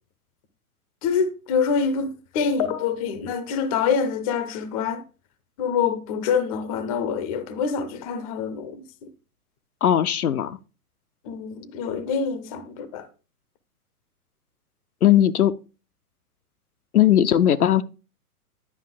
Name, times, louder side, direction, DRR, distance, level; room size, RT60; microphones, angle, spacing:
voice 1, 1.0-5.0 5.6-9.1 11.2-13.1, left 6 dB, 25° left, 0.6 m, -26 dB
voice 2, 9.8-10.6 15.0-15.5 16.9-17.8, left 11 dB, 70° left, 0.6 m, -18 dB
9.9 x 5.4 x 3.8 m
figure-of-eight pair, 120°, 46 cm